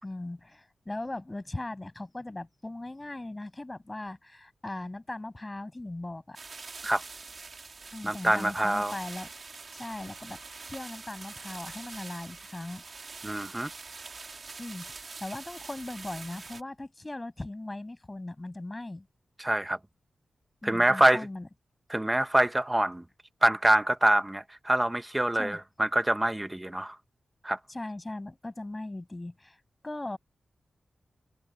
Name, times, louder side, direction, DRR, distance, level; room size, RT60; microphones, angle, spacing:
voice 1, 0.0-6.4 7.9-9.3 9.7-10.4 10.6-12.8 14.6-19.1 20.6-21.5 25.3-25.6 27.7-29.6 29.8-30.2, left 2 dB, 15° left, 7.8 m, -39 dB
sound 1, 6.4-16.6, right 4 dB, 40° right, 2.9 m, -44 dB
voice 2, 8.0-8.9 13.2-13.7 19.4-19.8 20.6-21.2 21.9-23.0 23.4-27.0 27.4-27.6, right 1 dB, 10° right, 1.0 m, -25 dB
wide cardioid pair, 160°, 0 cm